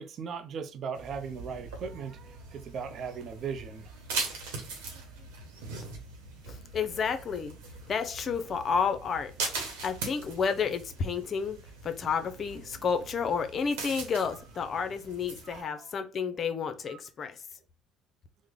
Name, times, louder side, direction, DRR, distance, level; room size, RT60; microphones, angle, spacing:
voice 1, 0.0-3.9 14.3-14.4 15.4-15.9 16.9-17.0, right 6 dB, 55° right, 0.5 m, -38 dB
sound 1, 0.9-15.6, right 4 dB, 85° right, 0.9 m, -41 dB
voice 2, 6.5-7.6 7.9-9.3 9.8-11.6 11.8-17.3, left 6 dB, 45° left, 0.5 m, -31 dB
3.2 x 2.0 x 3.6 m
hypercardioid pair, 70°, 0 cm